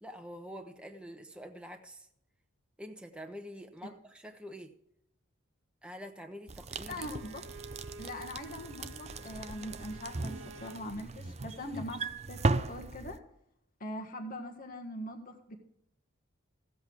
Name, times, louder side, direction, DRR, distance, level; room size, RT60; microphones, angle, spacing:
voice 1, 0.0-2.1 2.8-4.7 5.8-7.1, equal, 5° right, 4 dB, 0.9 m, -46 dB
sound 1, 6.5-13.2, right 3 dB, 30° right, 0.5 m, -37 dB
Bowed string instrument, 6.8-10.9, right 3 dB, 70° right, 1.0 m, -51 dB
voice 2, 6.9-7.4 8.0-12.0 12.3-13.2 13.8-15.6, left 1 dB, 40° left, 3 dB, 1.6 m, -42 dB
15.5 x 8.0 x 4.7 m, 0.75 s
head